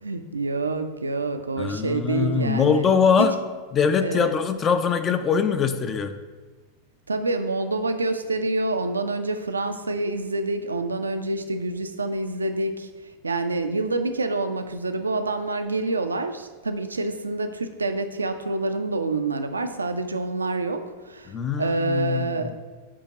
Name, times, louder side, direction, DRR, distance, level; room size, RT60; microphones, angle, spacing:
voice 1, 0.0-2.8 3.1-3.3 4.0-4.3 7.1-12.9 13.2-22.6, right 2 dB, 75° right, 8 dB, 0.4 m, -27 dB
voice 2, 1.6-3.3 3.7-6.1 21.3-22.4, left 6 dB, 25° left, 9 dB, 0.5 m, -22 dB
8.5 x 2.9 x 4.9 m, 1.4 s
figure-of-eight pair, 90°, 0 cm